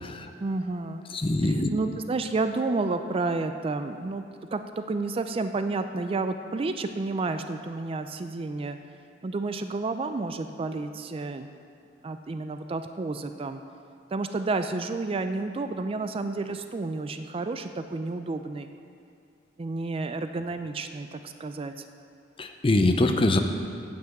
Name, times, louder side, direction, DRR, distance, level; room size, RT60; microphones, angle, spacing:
voice 1, 0.4-1.1 1.4-4.2 4.5-8.8 9.2-11.5 12.0-13.6 14.1-18.7 19.6-21.7, right 3 dB, 30° right, 8 dB, 0.4 m, -30 dB
voice 2, 1.1-1.7 22.4-23.4, left 2 dB, 30° left, 7 dB, 0.5 m, -23 dB
8.9 x 5.8 x 7.6 m, 2.3 s
head